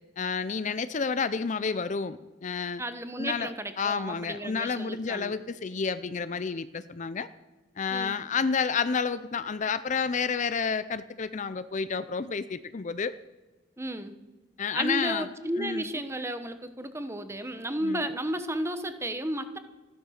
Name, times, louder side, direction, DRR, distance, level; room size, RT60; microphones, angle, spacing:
voice 1, 0.2-2.8 3.2-3.5 3.8-7.3 7.8-13.1 14.6-15.3 15.6-15.9 17.8-18.1, left 5 dB, 40° left, 14 dB, 0.5 m, -30 dB
voice 2, 2.8-5.3 7.9-8.2 13.8-14.1 14.7-19.6, right 1 dB, 15° right, 10 dB, 1.1 m, -33 dB
14.5 x 11.5 x 6.5 m, 1.1 s
head